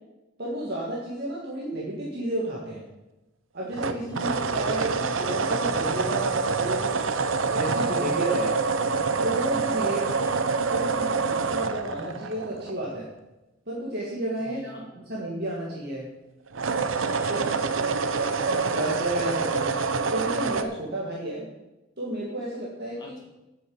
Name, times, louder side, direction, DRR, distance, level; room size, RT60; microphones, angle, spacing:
voice 1, 0.4-2.8 3.5-6.9 7.4-8.6 9.2-10.2 10.7-13.1 13.7-16.1 17.3-17.4 18.4-19.8 20.1-21.5 22.0-23.1, right 1 dB, 55° right, -4 dB, 1.9 m, -31 dB
sound 1, 3.7-13.0 16.5-20.6, right 4 dB, 75° right, 0.7 m, -26 dB
voice 2, 4.1-4.5 9.8-10.4 14.4-14.9 17.1-18.5 23.0-23.2, left 1 dB, 20° left, -3 dB, 2.9 m, -46 dB
8.1 x 7.1 x 8.0 m, 1.0 s
head